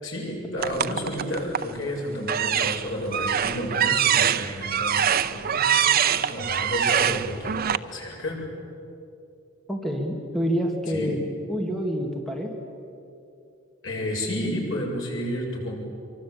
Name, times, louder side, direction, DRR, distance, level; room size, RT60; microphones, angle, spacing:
voice 1, 0.0-8.5 10.9-11.1 13.8-15.8, equal, 75° left, -1 dB, 7.3 m, -31 dB
sound 1, 0.6-1.7 2.2-7.8, right 9 dB, 50° right, 0.7 m, -24 dB
voice 2, 9.7-11.2 11.5-12.6, equal, ahead, 1 dB, 2.3 m, -27 dB
24.5 x 24.0 x 8.7 m, 2.7 s
head